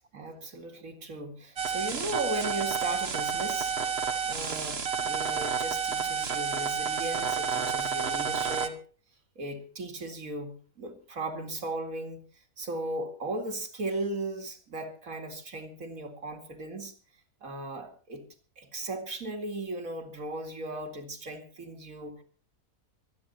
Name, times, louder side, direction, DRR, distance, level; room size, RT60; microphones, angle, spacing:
voice 1, 0.1-3.7 4.3-8.8 9.4-12.2 12.6-16.9 17.4-18.3 18.6-22.2, right 2 dB, 65° right, 2.7 m, -37 dB
sound 1, 1.6-8.7, right 6 dB, 45° right, 1.4 m, -30 dB
25.0 x 9.8 x 4.3 m
omnidirectional pair, 1.5 m